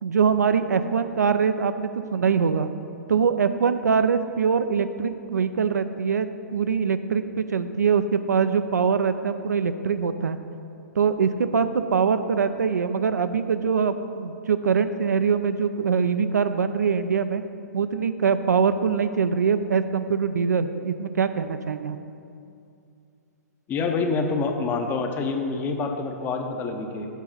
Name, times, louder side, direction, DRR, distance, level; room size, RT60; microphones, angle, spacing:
voice 1, 0.0-2.7 3.1-10.4 10.9-17.4 17.7-22.0, right 6 dB, 75° right, 10 dB, 0.4 m, -23 dB
voice 2, 23.7-27.1, left 4 dB, 20° left, 5 dB, 0.6 m, -26 dB
7.2 x 4.7 x 5.4 m, 2.5 s
figure-of-eight pair, 115°, 9 cm